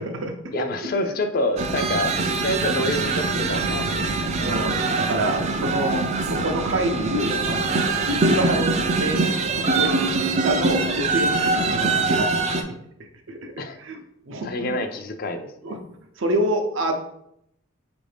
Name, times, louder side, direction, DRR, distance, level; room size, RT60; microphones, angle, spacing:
voice 1, 0.0-0.9 1.8-1.9 2.2-2.3 4.4-9.2 9.5-9.9 10.3-12.7 13.3-14.0 14.2-14.9 15.6-15.8 16.2-16.9, right 1 dB, 65° right, 3 dB, 0.6 m, -27 dB
voice 2, 0.5-2.2 2.4-4.0 4.4-4.5 13.6-13.8 14.4-15.8, left 1 dB, 45° left, 8 dB, 0.4 m, -27 dB
sound 1, 1.6-12.6, right 3 dB, 30° right, 0.3 m, -23 dB
5.3 x 2.6 x 3.3 m, 0.77 s
head